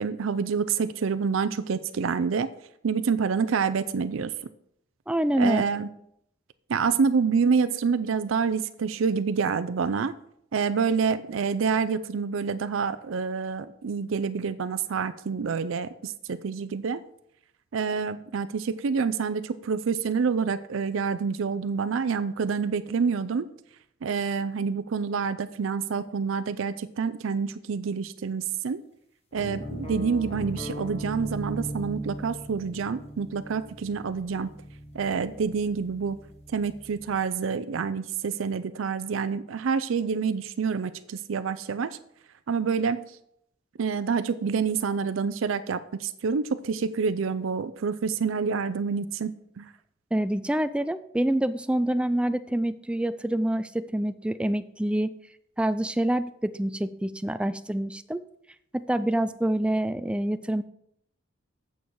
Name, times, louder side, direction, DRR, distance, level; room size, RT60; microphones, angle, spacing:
voice 1, 0.0-2.5 2.8-4.3 5.4-5.9 6.7-10.2 10.5-17.0 17.7-23.5 24.0-28.8 29.3-34.5 34.9-36.2 36.5-42.0 42.5-43.0 43.8-49.7, right 5 dB, 90° right, 12 dB, 0.5 m, -27 dB
voice 2, 5.1-5.6 50.1-55.2 55.6-58.2 58.7-60.6, right 1 dB, 5° right, 13 dB, 0.3 m, -26 dB
sound 1, 29.3-37.2, equal, 30° left, 1.4 m, -38 dB
8.5 x 6.9 x 4.6 m, 0.73 s
head